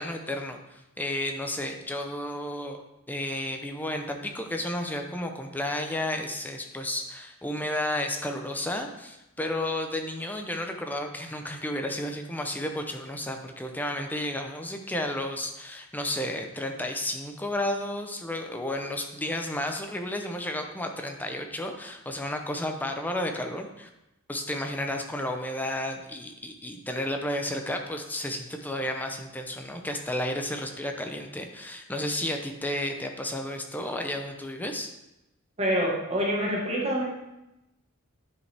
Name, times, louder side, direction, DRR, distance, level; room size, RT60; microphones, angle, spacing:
voice 1, 0.0-2.8 3.1-23.9 24.3-34.9, left 1 dB, 10° left, 4 dB, 0.6 m, -32 dB
voice 2, 35.6-37.0, equal, 30° right, -3 dB, 1.6 m, -26 dB
9.6 x 5.2 x 3.4 m, 0.94 s
head